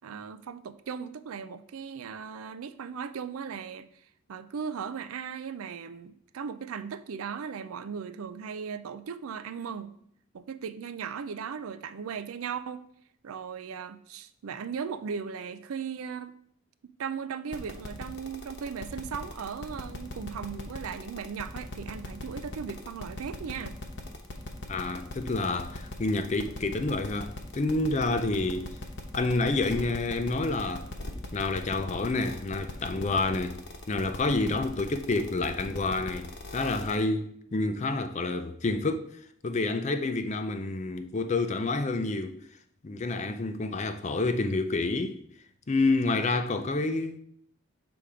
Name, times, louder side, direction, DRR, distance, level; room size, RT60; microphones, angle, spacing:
voice 1, 0.0-3.9 4.3-10.0 10.3-12.8 13.2-16.3 17.0-23.8, right 6 dB, 80° right, 0.4 m, -37 dB
sound 1, 17.5-37.0, left 2 dB, 55° left, 1.0 m, -39 dB
voice 2, 24.7-28.7 29.1-30.9 31.3-33.6 33.9-39.1 39.4-42.4 42.8-45.2 45.7-47.2, left 3 dB, 35° left, 0.4 m, -28 dB
6.9 x 3.5 x 4.9 m
head